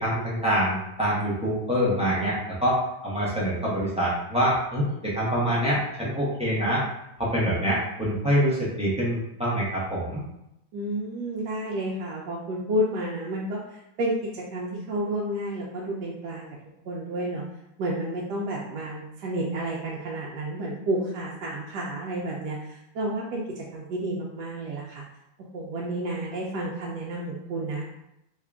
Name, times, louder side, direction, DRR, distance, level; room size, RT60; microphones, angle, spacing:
voice 1, 0.0-6.8 7.2-10.2, equal, 10° right, -7 dB, 0.3 m, -25 dB
voice 2, 10.7-16.5 16.9-17.4 17.8-25.0 25.5-27.9, right 1 dB, 75° right, -3 dB, 1.1 m, -31 dB
3.6 x 2.4 x 3.4 m, 0.84 s
omnidirectional pair, 1.9 m